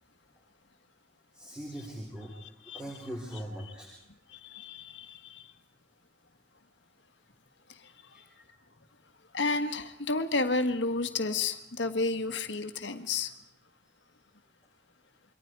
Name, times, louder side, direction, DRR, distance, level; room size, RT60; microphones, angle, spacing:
voice 1, 1.3-2.3 2.6-3.9 8.1-8.4, equal, 5° right, -3 dB, 4.5 m, -41 dB
voice 2, 4.3-5.4 9.3-13.3, left 3 dB, 70° left, 8 dB, 1.6 m, -31 dB
28.0 x 24.0 x 4.7 m, 0.76 s
head